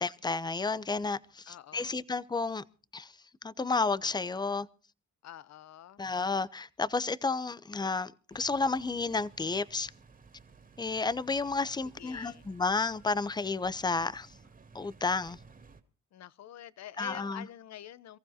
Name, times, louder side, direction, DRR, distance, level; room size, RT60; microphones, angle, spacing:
voice 1, 0.0-2.6 2.9-3.1 3.4-4.7 6.0-9.9 10.8-14.3 14.7-15.4 17.0-17.5, left 4 dB, 15° left, 0.7 m, -31 dB
voice 2, 1.5-2.0 5.2-6.0 11.8-12.4 16.1-18.2, left 11 dB, 60° left, 0.9 m, -47 dB
sound 1, 8.3-15.8, right 5 dB, 30° right, 2.5 m, -56 dB
28.0 x 15.0 x 2.8 m
cardioid pair, 90°, 30 cm